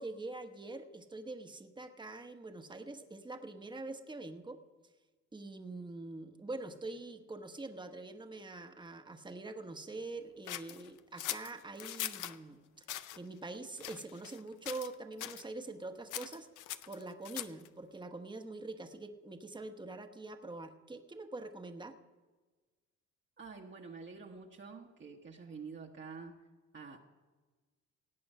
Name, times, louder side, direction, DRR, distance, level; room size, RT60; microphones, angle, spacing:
voice 1, 0.0-4.6 5.3-12.9 13.2-22.0, right 2 dB, 15° right, 6 dB, 1.1 m, -45 dB
sound 1, 10.5-12.4 12.8-13.2 13.8-14.4 14.7-14.9 15.2-15.5 16.1-17.7, left 13 dB, 85° left, 0.6 m, -41 dB
voice 2, 23.4-26.4 26.7-27.0, right 4 dB, 40° right, 0 dB, 1.3 m, -48 dB
17.5 x 8.6 x 5.5 m, 1.3 s
cardioid pair, 90°, 30 cm